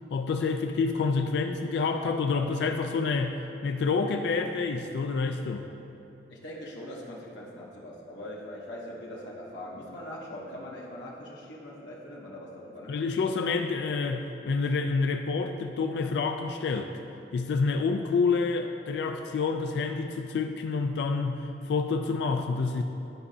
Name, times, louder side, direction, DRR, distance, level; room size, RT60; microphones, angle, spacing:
voice 1, 0.1-5.7 12.9-16.9 17.3-22.8, left 4 dB, 70° left, 5 dB, 0.3 m, -28 dB
voice 2, 6.3-13.0, left 1 dB, 90° left, -4 dB, 1.0 m, -41 dB
11.0 x 4.9 x 2.7 m, 2.9 s
head